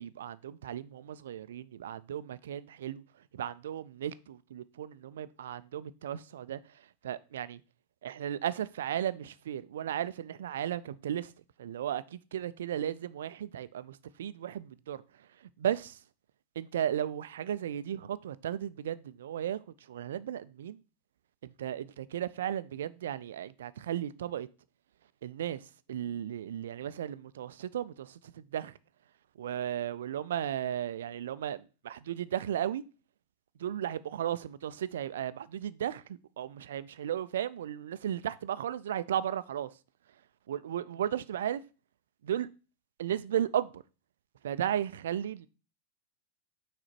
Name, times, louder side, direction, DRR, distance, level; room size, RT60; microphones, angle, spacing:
voice 1, 0.0-3.0 3.3-6.6 7.0-7.6 8.0-11.3 11.6-15.0 15.4-16.0 16.6-19.6 19.9-20.8 21.4-24.5 25.2-28.8 29.4-32.8 33.6-39.7 40.5-41.6 42.2-42.5 43.0-43.8 44.4-45.5, right 10 dB, 60° right, 0.3 m, -35 dB
6.2 x 4.1 x 4.4 m
figure-of-eight pair, 90°, 0 cm